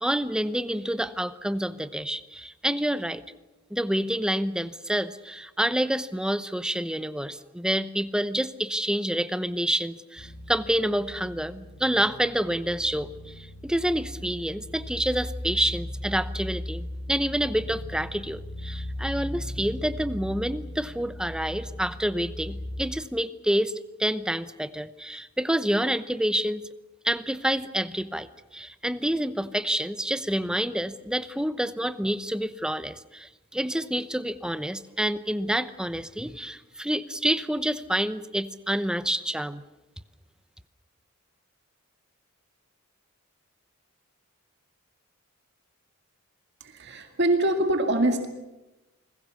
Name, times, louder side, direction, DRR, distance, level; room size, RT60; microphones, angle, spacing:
voice 1, 0.0-3.2 3.7-23.7 24.0-26.6 27.0-39.6, equal, 5° right, 13 dB, 0.8 m, -28 dB
sound 1, 10.2-22.8, left 1 dB, 40° left, 4.5 m, -38 dB
voice 2, 46.6-48.3, right 1 dB, 50° right, 5 dB, 2.2 m, -24 dB
28.5 x 21.0 x 7.0 m, 1.0 s
head